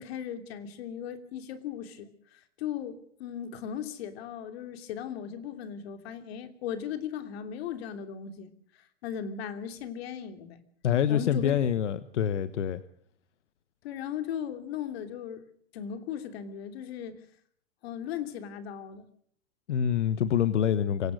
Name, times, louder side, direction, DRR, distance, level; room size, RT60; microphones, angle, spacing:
voice 1, 0.0-8.5 9.0-10.6 11.1-11.6 13.8-15.4 15.7-17.2 17.8-19.1, left 9 dB, 60° left, 8 dB, 3.0 m, -37 dB
voice 2, 10.8-12.8 19.7-21.1, left 9 dB, 80° left, 14 dB, 1.3 m, -26 dB
24.0 x 18.0 x 6.4 m, 0.63 s
hypercardioid pair, 130°, 35 cm